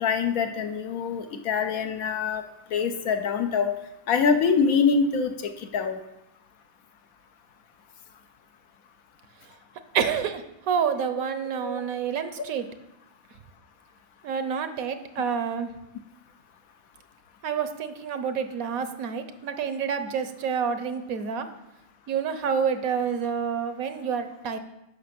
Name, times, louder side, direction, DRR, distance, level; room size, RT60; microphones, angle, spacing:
voice 1, 0.0-2.4 2.7-3.7 4.1-5.3 5.7-6.0 11.6-11.8, left 5 dB, 85° left, 6 dB, 1.2 m, -24 dB
voice 2, 9.9-10.4 10.7-12.7 14.2-15.7 17.4-21.5 22.1-24.6, right 7 dB, 85° right, 10 dB, 1.2 m, -28 dB
9.3 x 5.8 x 6.0 m, 0.89 s
omnidirectional pair, 1.5 m